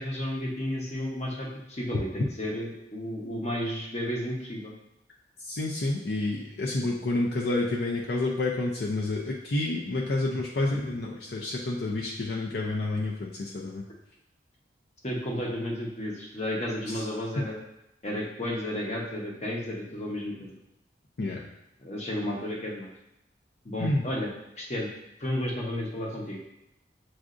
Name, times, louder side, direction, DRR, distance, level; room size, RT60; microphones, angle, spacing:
voice 1, 0.0-4.7 15.0-17.6 18.0-20.5 21.8-22.9 23.6-24.9 25.2-26.4, left 1 dB, 35° left, -2 dB, 0.9 m, -32 dB
voice 2, 5.4-13.8 16.9-17.0 21.2-21.4 23.8-24.1, left 2 dB, 65° left, -3 dB, 0.5 m, -29 dB
7.4 x 2.5 x 2.5 m, 0.86 s
head